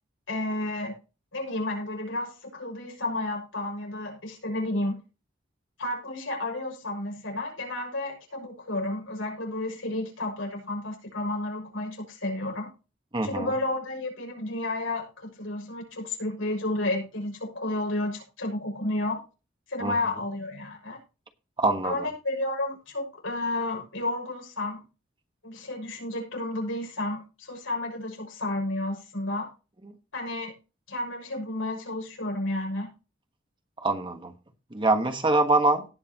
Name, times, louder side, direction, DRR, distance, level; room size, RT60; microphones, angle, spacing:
voice 1, 0.3-0.9 1.3-5.0 5.8-12.7 13.2-19.2 19.7-21.0 21.8-24.8 25.4-29.5 30.1-30.5 30.9-32.9, left 2 dB, 85° left, 0 dB, 6.3 m, -31 dB
voice 2, 13.1-13.5 19.8-19.9 21.6-22.1 29.8-29.9 33.8-34.3 34.7-35.8, right 2 dB, 25° right, 6 dB, 1.4 m, -24 dB
18.0 x 6.7 x 3.0 m, 0.31 s
head